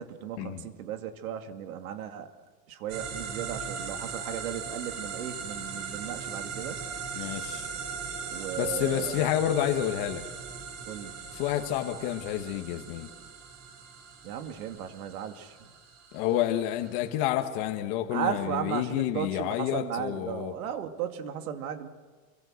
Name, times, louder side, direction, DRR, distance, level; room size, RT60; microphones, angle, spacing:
voice 1, 0.0-2.3 2.7-6.8 8.3-9.2 10.9-11.2 14.2-15.7 18.1-21.9, right 9 dB, 90° right, 6 dB, 2.5 m, -35 dB
sound 1, 2.9-17.1, right 6 dB, 70° right, 6.7 m, -39 dB
voice 2, 7.1-7.7 8.6-10.2 11.3-13.1 16.1-20.5, left 12 dB, 35° left, 5 dB, 1.4 m, -29 dB
26.5 x 24.0 x 6.5 m, 1.4 s
supercardioid pair, 180°, 42 cm